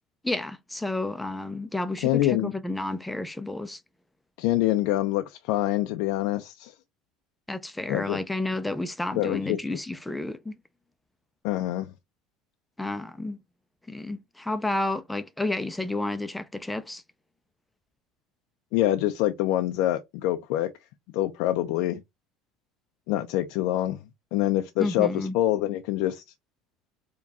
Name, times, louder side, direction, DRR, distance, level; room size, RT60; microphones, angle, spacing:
voice 1, 0.2-3.8 7.5-10.5 12.8-13.4 13.9-17.0 24.8-25.4, left 2 dB, 5° left, 0.4 m, -31 dB
voice 2, 2.0-2.5 4.4-6.7 7.9-8.2 9.1-9.8 11.4-11.9 18.7-20.7 21.1-22.0 23.1-24.0 24.3-26.2, left 14 dB, 75° left, 0.4 m, -25 dB
4.6 x 2.2 x 2.7 m
supercardioid pair, 120°, 0 cm